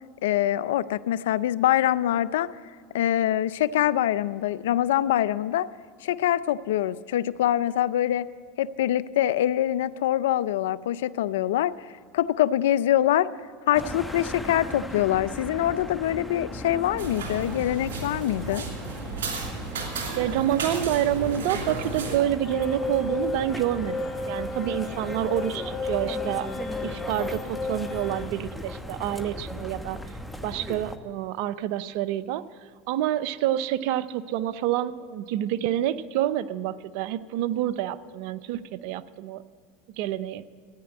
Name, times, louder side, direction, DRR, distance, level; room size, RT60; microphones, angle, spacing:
voice 1, 0.2-2.5 2.9-5.7 6.0-8.3 8.6-11.7 12.1-13.3 13.7-18.6, left 12 dB, 80° left, 18 dB, 0.5 m, -24 dB
sound 1, 13.7-31.0, left 1 dB, ahead, 1.0 m, -38 dB
sound 2, 17.0-22.2, right 4 dB, 85° right, 3.1 m, -34 dB
voice 2, 20.2-26.5 26.8-30.0 30.4-32.4 32.9-39.4 40.0-40.4, right 12 dB, 65° right, 15 dB, 0.7 m, -28 dB
sound 3, 22.4-28.2, left 3 dB, 30° left, 3.2 m, -33 dB
14.0 x 9.8 x 7.8 m, 2.2 s
hypercardioid pair, 100°, 0 cm